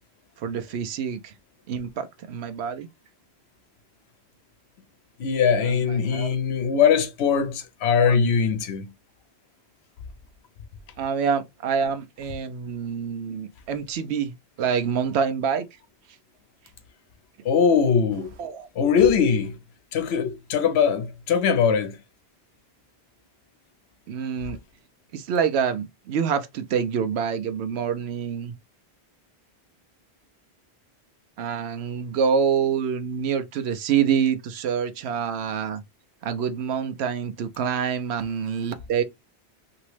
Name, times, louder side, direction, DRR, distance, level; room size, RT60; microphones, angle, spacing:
voice 1, 0.4-1.3 1.7-2.9 5.6-6.4 8.0-8.1 11.0-15.7 18.4-18.7 24.1-24.6 25.1-28.5 31.4-35.8 36.2-39.0, right 7 dB, 85° right, 0.9 m, -26 dB
voice 2, 5.2-8.9 17.4-18.3 18.8-19.6 19.9-22.0, left 6 dB, 85° left, 0.9 m, -21 dB
3.0 x 2.8 x 3.1 m
omnidirectional pair, 1.1 m